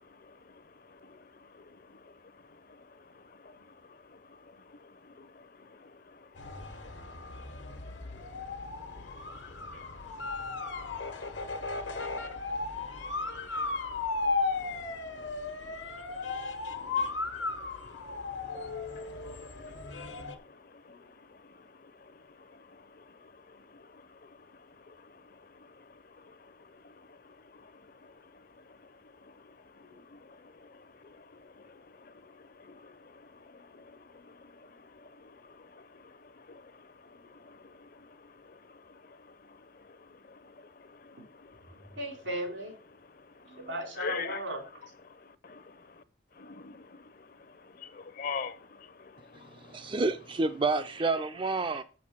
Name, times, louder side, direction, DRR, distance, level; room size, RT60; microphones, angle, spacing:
voice 1, 0.9-1.2 1.5-2.0 3.1-3.6 4.1-4.4 4.7-6.2 6.6-6.7 7.0-7.1 7.6-7.7 8.1-8.4 8.8-9.9 10.2-12.2 12.9-13.0 13.9-14.0 14.9-15.3 16.7-21.7 22.0-22.1 22.5-24.3 24.9-25.0 25.6-25.8 26.2-26.5 26.8-27.2 27.6-27.7 28.0-28.1 29.2-29.3 29.7-39.2 39.5-40.5 40.8-41.6 43.4-43.5 44.0-44.4 45.2-45.6 46.4-47.3 47.6-49.9, left 5 dB, 50° left, 0.8 m, -47 dB
sound 1, 6.4-20.3, left 3 dB, 80° left, 1.4 m, -35 dB
voice 2, 41.9-42.8 43.5-44.6, right 1 dB, 90° right, 3.4 m, -36 dB
voice 3, 49.3-51.8, right 3 dB, 25° right, 0.4 m, -29 dB
6.7 x 6.5 x 7.2 m
head